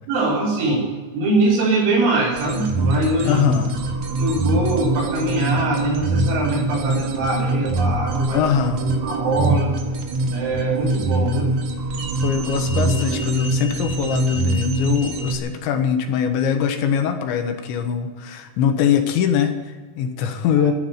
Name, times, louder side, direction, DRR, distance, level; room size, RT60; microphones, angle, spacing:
voice 1, 0.1-3.4 4.2-8.4 9.0-9.8 10.3-11.6, right 2 dB, 80° right, -7 dB, 5.9 m, -22 dB
sound 1, 2.3-15.4, right 1 dB, 55° right, 2.3 m, -23 dB
voice 2, 3.3-3.8 8.3-8.8 12.2-20.7, left 8 dB, 80° left, 6 dB, 3.5 m, -22 dB
12.5 x 11.5 x 9.8 m, 1.5 s
omnidirectional pair, 5.4 m